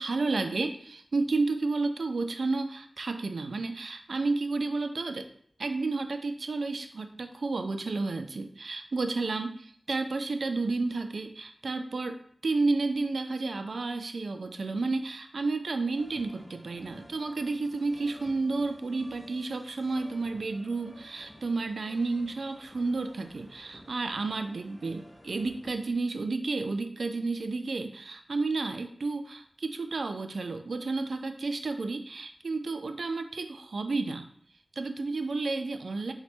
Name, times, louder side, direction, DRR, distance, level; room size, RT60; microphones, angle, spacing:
voice 1, 0.0-5.3 5.6-34.3 34.8-36.1, right 3 dB, 85° right, 7 dB, 0.3 m, -31 dB
sound 1, 16.0-25.9, equal, 15° left, 0.8 m, -53 dB
4.2 x 2.2 x 4.3 m, 0.62 s
wide cardioid pair, 65°, 0 cm